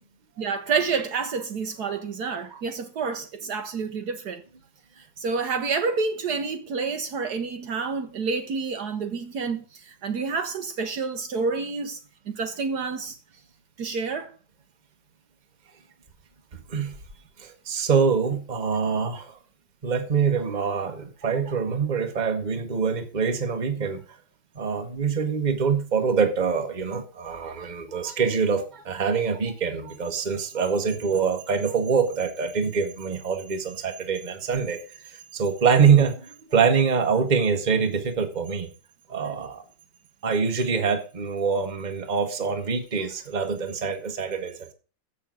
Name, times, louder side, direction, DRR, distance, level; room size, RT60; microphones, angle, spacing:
voice 1, 0.4-4.4 5.0-12.0 12.3-13.2 13.8-14.3, right 5 dB, 65° right, 1.5 m, -29 dB
voice 2, 17.4-19.4 19.8-24.0 24.5-34.8 35.3-38.7 39.1-39.6 40.2-44.7, right 6 dB, 25° right, 1.3 m, -24 dB
7.6 x 6.6 x 7.5 m
omnidirectional pair, 2.0 m